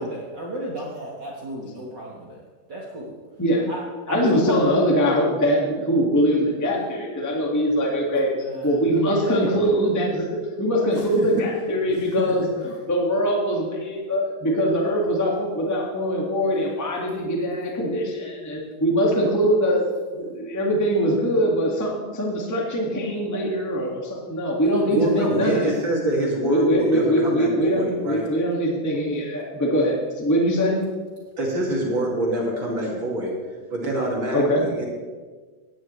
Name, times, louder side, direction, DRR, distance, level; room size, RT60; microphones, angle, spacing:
voice 1, 0.0-2.4 2.7-3.1 3.7-3.8 4.1-4.7 8.4-9.8 10.9-11.4 12.2-12.5, equal, 60° right, -3 dB, 1.1 m, -31 dB
voice 2, 4.1-19.8 20.1-25.7 26.5-30.8 34.3-34.7, equal, 30° left, -2 dB, 0.3 m, -22 dB
voice 3, 24.9-28.3 31.4-33.3 33.7-34.9, right 1 dB, 40° right, -2 dB, 2.4 m, -25 dB
17.0 x 10.5 x 3.2 m, 1.4 s
omnidirectional pair, 4.2 m